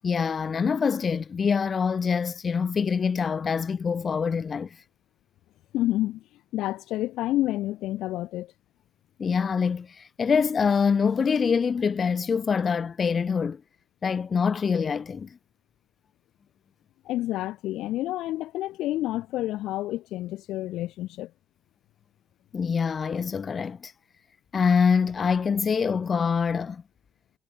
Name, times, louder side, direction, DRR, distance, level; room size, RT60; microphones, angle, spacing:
voice 1, 0.0-4.8 9.2-13.6 14.0-15.4 22.5-23.9 24.5-26.8, left 6 dB, 35° left, 0.6 m, -25 dB
voice 2, 5.7-6.2 6.5-8.5 17.0-21.3, left 15 dB, 80° left, 1.3 m, -29 dB
cardioid pair, 130°, 0 cm